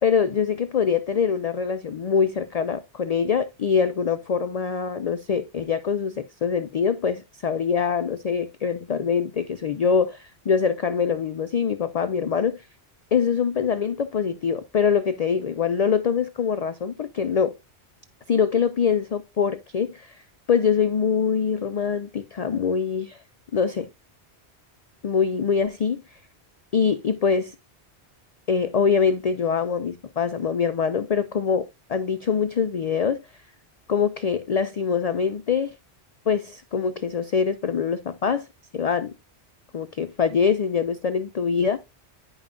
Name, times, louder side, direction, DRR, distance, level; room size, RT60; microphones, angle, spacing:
voice 1, 0.0-12.6 13.1-17.5 18.3-20.2 20.5-23.2 23.5-23.9 25.0-26.0 26.7-27.5 28.5-33.2 33.9-35.8 36.3-38.5 38.7-39.1 39.7-41.8, left 6 dB, 60° left, 0.4 m, -24 dB
9.7 x 5.4 x 2.5 m
omnidirectional pair, 1.2 m